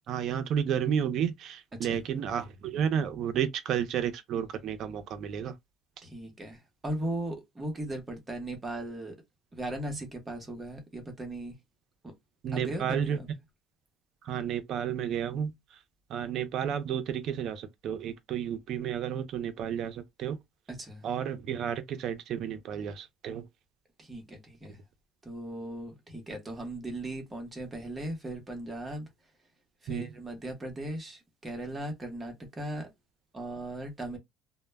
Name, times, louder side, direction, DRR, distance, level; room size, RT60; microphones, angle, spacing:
voice 1, 0.1-5.5 12.4-13.2 14.2-15.8 16.1-20.4 21.0-23.5 29.9-30.1, right 8 dB, 50° right, 0.4 m, -32 dB
voice 2, 1.7-2.0 6.0-9.2 9.5-11.6 12.0-12.1 12.5-13.3 20.7-21.1 24.0-24.8 25.2-29.1 29.8-32.9 33.3-34.2, right 1 dB, 15° right, 0.7 m, -38 dB
2.0 x 2.0 x 3.2 m
cardioid pair, 160°, 0 cm